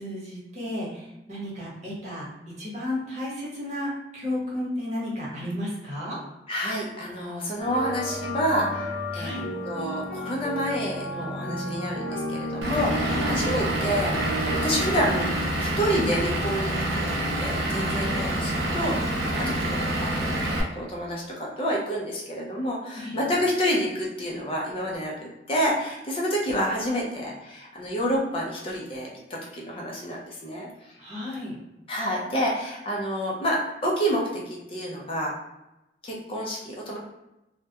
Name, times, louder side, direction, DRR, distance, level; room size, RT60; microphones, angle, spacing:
voice 1, 0.0-2.3 2.6-6.2 9.1-9.5 13.0-13.4 19.3-19.5 22.9-23.2 31.0-31.6, left 1 dB, 40° right, -6 dB, 0.9 m, -33 dB
voice 2, 6.5-9.3 9.7-15.3 15.6-19.5 20.0-30.7 31.9-35.4 36.0-37.0, equal, 30° left, -3 dB, 0.4 m, -29 dB
sound 1, 7.6-15.3, equal, 90° left, 0.8 m, -32 dB
Vehicle / Engine, 12.6-20.6, right 1 dB, 70° right, 0.6 m, -27 dB
2.2 x 2.1 x 2.8 m, 0.93 s
head